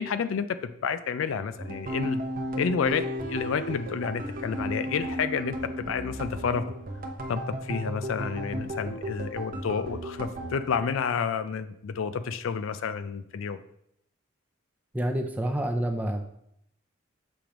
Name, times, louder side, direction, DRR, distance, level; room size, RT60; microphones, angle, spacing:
voice 1, 0.0-2.2 2.6-6.6 7.3-13.6, left 6 dB, 70° left, 12 dB, 0.4 m, -30 dB
sound 1, 1.6-10.7, equal, 40° right, 0.7 m, -34 dB
voice 2, 14.9-16.3, right 1 dB, 10° right, 4 dB, 0.5 m, -28 dB
6.9 x 3.0 x 5.0 m, 0.74 s
head